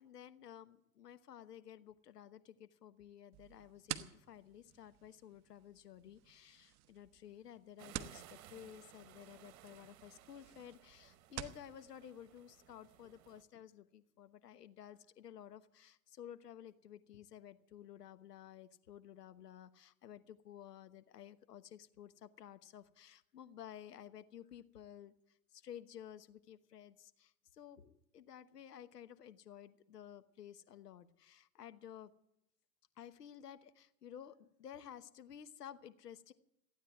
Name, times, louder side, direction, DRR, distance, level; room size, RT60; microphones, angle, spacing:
voice 1, 0.0-32.1 33.0-36.3, left 10 dB, 90° left, 12 dB, 1.1 m, -54 dB
sound 1, 3.3-11.7, right 13 dB, 35° right, 0.9 m, -51 dB
sound 2, 7.8-13.4, right 12 dB, 65° right, 1.4 m, -60 dB
15.5 x 9.5 x 9.4 m, 0.81 s
hypercardioid pair, 105°, 46 cm